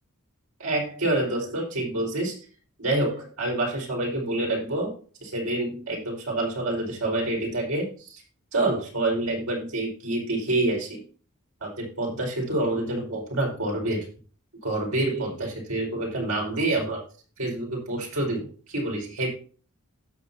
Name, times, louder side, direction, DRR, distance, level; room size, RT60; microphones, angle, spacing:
voice 1, 0.6-2.3 2.8-4.9 5.2-8.2 8.5-11.0 11.6-14.0 14.6-17.0 17.4-19.3, right 2 dB, 80° right, -2 dB, 4.8 m, -27 dB
17.0 x 6.5 x 2.8 m, 0.41 s
head